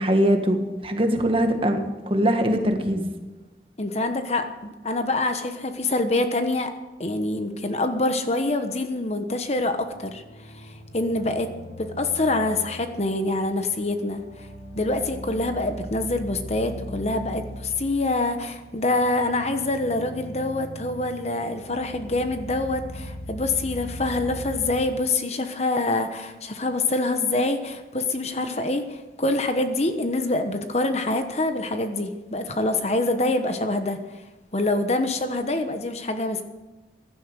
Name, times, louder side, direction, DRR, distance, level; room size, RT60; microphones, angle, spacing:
voice 1, 0.0-3.1, equal, 30° right, 5 dB, 1.6 m, -22 dB
voice 2, 3.8-6.7 7.0-10.2 10.6-11.5 11.8-14.5 14.7-34.0 34.5-36.4, left 2 dB, 40° left, 7 dB, 1.1 m, -25 dB
sound 1, 9.4-24.7, equal, 80° left, 6.4 m, -40 dB
16.0 x 11.5 x 6.6 m, 1.2 s
head